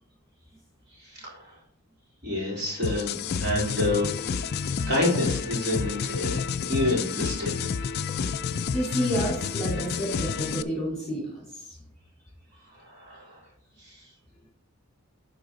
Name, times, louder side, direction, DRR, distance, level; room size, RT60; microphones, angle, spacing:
voice 1, 1.0-1.6 2.2-4.2 4.8-7.6 12.7-13.4 13.8-14.1, left 1 dB, 50° right, -4 dB, 3.5 m, -28 dB
sound 1, 2.8-10.6, left 6 dB, 45° left, 0.3 m, -30 dB
voice 2, 8.6-11.8, equal, 5° left, -7 dB, 3.7 m, -30 dB
12.0 x 4.1 x 3.9 m, 0.72 s
head